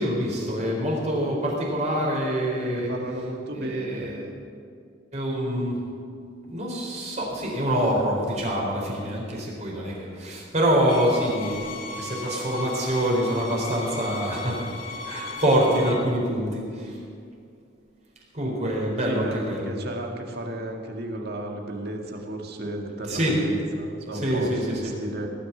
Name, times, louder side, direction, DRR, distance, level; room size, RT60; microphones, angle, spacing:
voice 1, 0.0-2.9 3.5-4.2 5.1-5.8 6.5-11.7 12.0-14.6 15.0-16.9 18.3-19.7 23.1-23.3 24.2-24.8, equal, 40° right, -2 dB, 4.0 m, -25 dB
voice 2, 2.6-4.3 19.0-25.3, right 1 dB, 60° right, 1 dB, 2.0 m, -33 dB
sound 1, 10.9-15.9, left 3 dB, 50° left, 2.1 m, -36 dB
18.0 x 6.7 x 9.3 m, 2.3 s
head